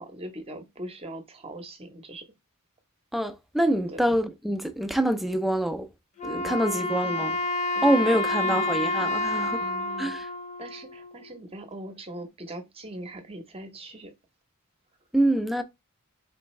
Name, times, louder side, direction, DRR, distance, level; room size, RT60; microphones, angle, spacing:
voice 1, 0.0-2.2 3.9-4.2 6.4-7.2 7.8-8.8 9.6-10.1 10.6-14.1, right 1 dB, 25° right, 0.8 m, -41 dB
voice 2, 3.1-5.9 6.2-7.4 7.8-9.6 10.0-10.3 15.1-15.6, right 1 dB, ahead, 0.4 m, -25 dB
Wind instrument woodwind instrument, 6.2-11.4, left 2 dB, 30° left, 0.8 m, -29 dB
4.4 x 3.3 x 3.1 m
head